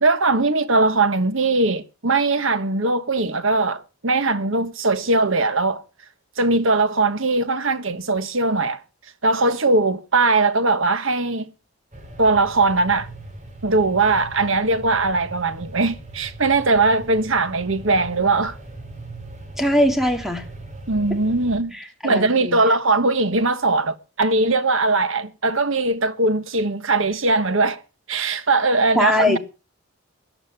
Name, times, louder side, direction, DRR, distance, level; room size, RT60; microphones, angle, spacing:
voice 1, 0.0-5.8 6.4-8.8 9.2-11.5 12.2-13.1 13.6-18.6 20.9-21.7 22.0-27.8 28.1-29.4, right 3 dB, 65° right, 1.4 m, -20 dB
sound 1, 11.9-21.6, right 2 dB, 35° right, 3.9 m, -39 dB
voice 2, 19.6-20.4 21.7-22.6 29.0-29.4, left 1 dB, ahead, 2.1 m, -21 dB
14.5 x 9.9 x 6.8 m
head